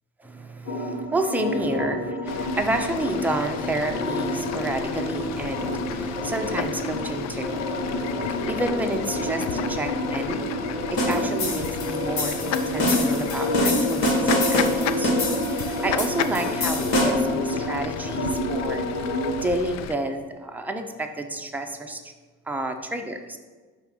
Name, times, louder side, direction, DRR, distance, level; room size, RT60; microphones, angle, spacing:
voice 1, 0.2-10.5 10.9-18.8 19.3-22.0 22.5-23.4, right 2 dB, 5° right, 4 dB, 0.6 m, -30 dB
sound 1, 0.7-19.3, left 1 dB, 85° left, 1.2 m, -29 dB
Fowl / Bird, 2.3-19.9, left 9 dB, 40° left, 0.4 m, -34 dB
sound 2, 11.0-17.3, left 1 dB, 60° left, 1.3 m, -25 dB
5.8 x 3.4 x 5.9 m, 1.4 s
figure-of-eight pair, 50°, 43 cm